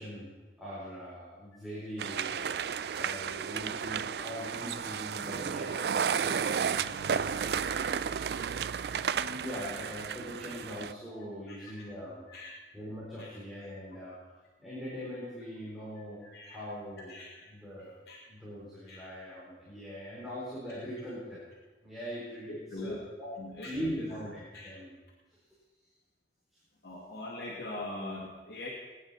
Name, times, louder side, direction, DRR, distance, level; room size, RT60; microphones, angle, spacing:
voice 1, 0.0-2.5 3.0-8.7 9.0-12.3 12.7-14.2 14.6-16.2 16.5-17.2 17.5-21.4 21.8-23.3 23.7-25.0, equal, ahead, -9 dB, 3.8 m, -42 dB
sound 1, 2.0-10.9, right 7 dB, 65° right, 0.4 m, -33 dB
voice 2, 11.5-11.8 12.3-12.5 13.2-13.3 14.1-14.2 16.2-16.6 17.1-17.5 17.8-18.2 18.9-19.0 22.5-23.0 23.4-24.2 24.5-24.7 26.8-28.7, left 2 dB, 65° left, -5 dB, 2.6 m, -42 dB
22.0 x 9.8 x 4.2 m, 1.3 s
head